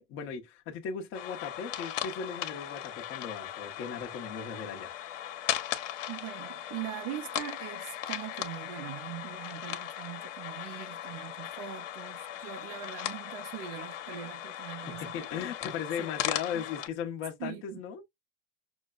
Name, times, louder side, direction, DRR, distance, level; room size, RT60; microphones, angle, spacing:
voice 1, 0.0-4.9 14.9-18.0, left 7 dB, 35° left, 1.1 m, -37 dB
sound 1, 1.1-16.9, left 12 dB, 90° left, 1.1 m, -38 dB
voice 2, 6.1-15.3 16.0-16.1 16.5-16.7 17.4-17.8, right 12 dB, 45° right, 0.5 m, -42 dB
6.2 x 2.2 x 2.4 m
supercardioid pair, 155°, 36 cm